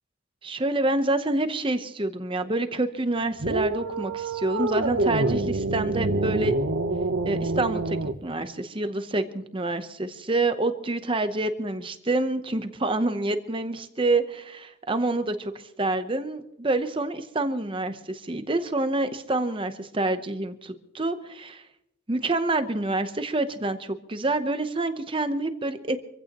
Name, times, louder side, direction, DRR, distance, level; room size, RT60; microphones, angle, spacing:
voice 1, 0.4-6.5 7.2-21.6 22.1-26.0, right 2 dB, 25° right, 9 dB, 0.8 m, -27 dB
sound 1, 3.4-8.2, right 2 dB, 75° right, 1.0 m, -26 dB
25.5 x 15.5 x 3.0 m, 0.83 s
head